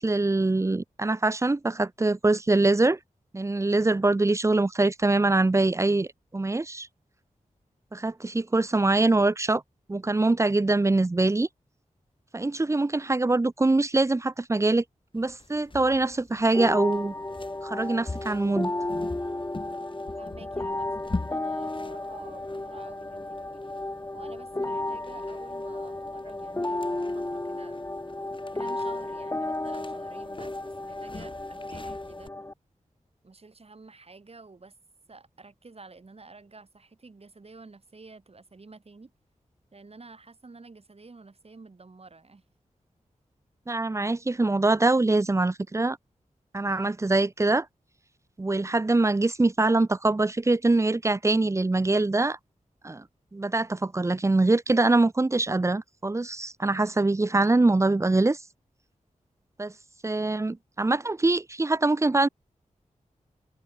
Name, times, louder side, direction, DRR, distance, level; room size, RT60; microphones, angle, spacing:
voice 1, 0.0-3.0 3.3-6.9 7.9-9.6 9.9-11.5 12.3-14.8 15.1-17.1 17.6-18.7 43.7-46.0 46.5-47.7 48.4-52.4 52.8-53.0 53.3-58.4 59.6-59.7 60.0-62.3, right 2 dB, 20° right, 0.5 m, -23 dB
sound 1, 15.1-32.3, left 3 dB, 40° left, 2.9 m, -43 dB
sound 2, 16.5-32.5, left 2 dB, 20° left, 1.2 m, -33 dB
voice 2, 20.2-21.0 21.3-23.8 24.1-27.9 28.5-32.3 33.2-34.7 35.1-39.1 39.7-42.4, right 3 dB, 45° right, 3.7 m, -50 dB
open air
cardioid pair, 60°, 14 cm